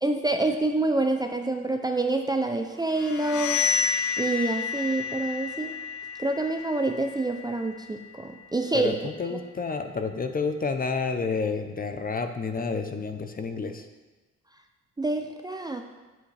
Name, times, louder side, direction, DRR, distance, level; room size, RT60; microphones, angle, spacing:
voice 1, 0.0-3.6 4.2-5.7 6.2-9.4 15.0-15.8, right 2 dB, 15° right, 5 dB, 0.5 m, -27 dB
sound 1, 2.9-8.6, left 6 dB, 80° left, 0.6 m, -31 dB
voice 2, 8.7-13.9, left 4 dB, 30° left, 7 dB, 0.7 m, -30 dB
8.0 x 7.7 x 3.3 m, 1.2 s
cardioid pair, 90°, 30 cm